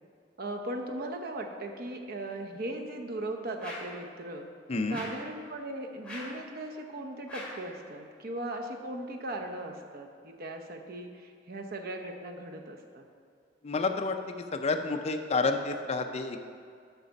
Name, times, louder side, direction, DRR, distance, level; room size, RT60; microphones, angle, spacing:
voice 1, 0.4-4.5 4.9-13.0, right 1 dB, 55° right, 3 dB, 0.8 m, -38 dB
sound 1, 3.6-4.0 4.9-5.3 6.0-6.4 7.3-7.7, left 1 dB, 5° left, 2.2 m, -42 dB
voice 2, 13.6-14.2 14.5-16.4, left 3 dB, 35° left, 5 dB, 0.4 m, -29 dB
8.0 x 5.8 x 5.2 m, 2.3 s
head